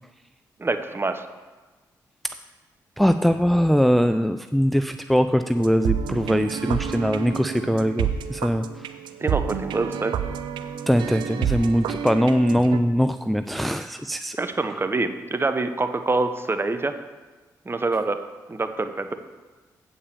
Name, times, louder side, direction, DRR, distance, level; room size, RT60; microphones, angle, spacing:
voice 1, 0.6-1.3 9.2-10.1 14.4-16.9 17.7-18.2 18.5-19.1, right 3 dB, 30° right, 9 dB, 0.8 m, -25 dB
voice 2, 3.0-8.7 10.9-14.4, equal, ahead, 9 dB, 0.3 m, -21 dB
sound 1, 5.5-12.8, right 8 dB, 80° right, 0.5 m, -29 dB
8.6 x 5.5 x 6.9 m, 1.3 s
supercardioid pair, 50°, 8 cm